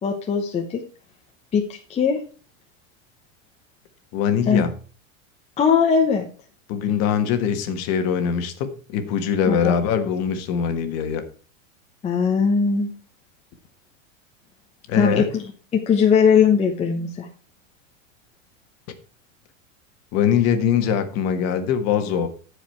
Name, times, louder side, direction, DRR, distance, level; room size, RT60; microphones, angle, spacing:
voice 1, 0.0-0.8 1.5-1.6 1.9-2.2 4.5-4.6 5.6-6.3 9.5-9.7 12.0-12.9 14.9-15.4 15.7-17.3, left 6 dB, 15° left, 2 dB, 0.9 m, -19 dB
voice 2, 4.1-4.7 6.7-11.3 14.9-15.3 20.1-22.3, left 7 dB, 40° left, 8 dB, 1.5 m, -22 dB
14.0 x 5.0 x 4.5 m, 0.38 s
supercardioid pair, 145°, 40 cm